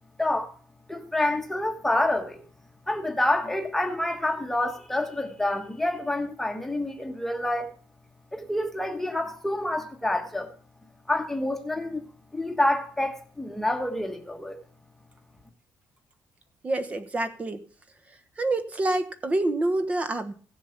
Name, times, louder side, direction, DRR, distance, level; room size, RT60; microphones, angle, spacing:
voice 1, 0.2-0.5 0.9-2.4 2.9-7.7 8.3-10.5 11.1-12.1 12.3-14.6, left 1 dB, 5° left, 1.4 m, -27 dB
voice 2, 16.6-17.6 18.4-20.3, right 2 dB, 20° right, 1.2 m, -27 dB
16.0 x 7.2 x 5.9 m
cardioid pair, 160°, 6 cm